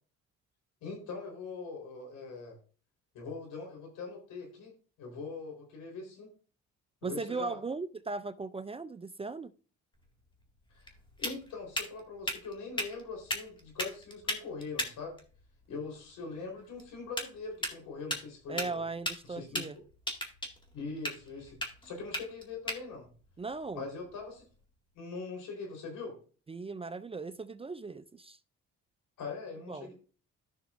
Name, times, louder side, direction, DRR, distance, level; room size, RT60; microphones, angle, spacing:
voice 1, 0.8-2.6 3.1-4.7 5.0-6.3 7.0-7.6 10.7-10.9 11.2-15.1 15.7-18.8 19.4-19.6 20.7-23.1 23.7-24.4 24.9-26.1 29.2-29.9, left 4 dB, 85° left, 4.0 m, -42 dB
voice 2, 7.0-9.5 18.5-19.8 23.4-23.8 26.5-28.4 29.7-29.9, right 4 dB, 20° right, 0.4 m, -38 dB
sound 1, 9.9-24.7, left 1 dB, 15° left, 2.0 m, -40 dB
14.0 x 6.1 x 2.5 m
cardioid pair, 90°, 30 cm